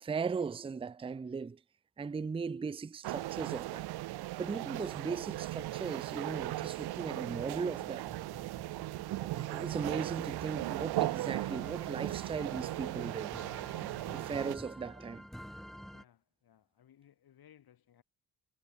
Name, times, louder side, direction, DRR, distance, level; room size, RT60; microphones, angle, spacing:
voice 1, 0.0-1.6 2.0-3.9 4.4-8.1 9.2-13.4 14.1-15.3, right 5 dB, 15° right, 0.5 m, -38 dB
sound 1, 3.0-14.6, right 17 dB, 70° right, 0.6 m, -37 dB
sound 2, 4.3-4.8 5.3-16.0, equal, ahead, 1.2 m, -51 dB
voice 2, 15.9-18.0, left 10 dB, 65° left, 6.9 m, -62 dB
cardioid pair, 95°, 39 cm